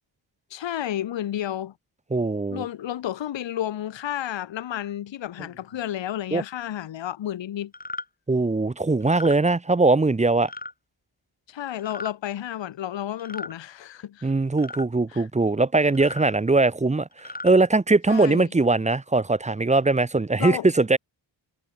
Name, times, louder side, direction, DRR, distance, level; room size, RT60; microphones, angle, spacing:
voice 1, 0.5-1.7 2.5-7.7 11.5-14.3 15.1-15.3 18.1-18.5 20.4-20.7, left 11 dB, 65° left, 0.9 m, -31 dB
voice 2, 2.1-2.7 6.3-6.4 8.3-10.5 14.2-21.0, right 3 dB, 15° right, 0.7 m, -21 dB
sound 1, 7.7-8.1 9.0-9.4 10.4-10.7 11.8-12.1 13.2-13.6 14.6-14.9 15.9-16.2 17.1-17.5, left 2 dB, 20° left, 1.8 m, -36 dB
cardioid pair, 75°, 48 cm